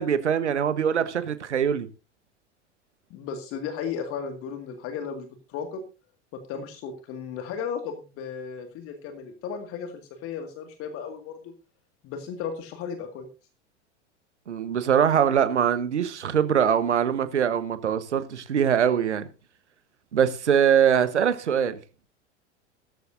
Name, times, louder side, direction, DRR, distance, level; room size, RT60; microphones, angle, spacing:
voice 1, 0.0-1.9 14.5-19.3 20.1-21.8, right 8 dB, 70° right, 1.3 m, -23 dB
voice 2, 3.1-5.8 6.5-9.9 10.2-11.5 12.0-13.3, left 6 dB, 40° left, 2.1 m, -35 dB
15.5 x 14.0 x 2.7 m
figure-of-eight pair, 85°, 36 cm